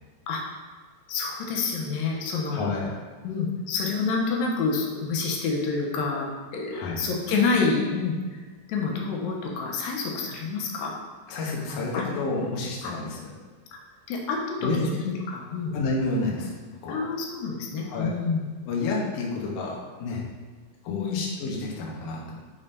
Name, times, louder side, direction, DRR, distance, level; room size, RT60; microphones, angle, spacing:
voice 1, 1.1-2.6 3.2-8.2 8.7-10.9 11.7-12.0 12.8-12.9 14.1-15.8 16.9-18.4 20.9-21.2, left 4 dB, 90° left, -1 dB, 2.6 m, -28 dB
voice 2, 2.5-2.9 6.7-7.0 11.3-13.3 14.6-14.8 15.1-15.2 15.7-16.5 16.8-17.1 17.9-18.1 18.7-20.2 20.8-22.4, left 3 dB, 65° left, -3 dB, 1.8 m, -30 dB
6.9 x 5.4 x 2.7 m, 1.4 s
omnidirectional pair, 4.0 m